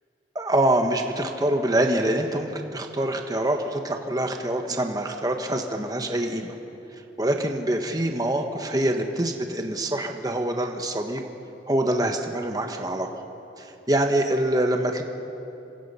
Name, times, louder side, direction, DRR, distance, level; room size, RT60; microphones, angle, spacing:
voice 1, 0.3-6.5 7.2-11.2 11.7-13.1 13.6-15.0, right 1 dB, 20° right, 4 dB, 1.3 m, -25 dB
27.5 x 24.5 x 5.7 m, 2.9 s
head